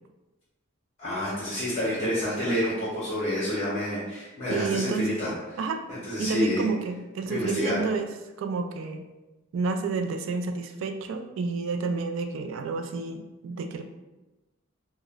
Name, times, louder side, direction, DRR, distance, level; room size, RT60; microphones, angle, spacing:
voice 1, 1.0-5.3 6.0-6.6 7.3-7.8, left 1 dB, 30° left, -9 dB, 0.8 m, -28 dB
voice 2, 4.5-5.1 5.6-5.8 6.2-8.1 8.4-9.1 9.5-13.8, right 4 dB, 65° right, 6 dB, 0.3 m, -30 dB
3.7 x 2.1 x 2.4 m, 1.1 s
head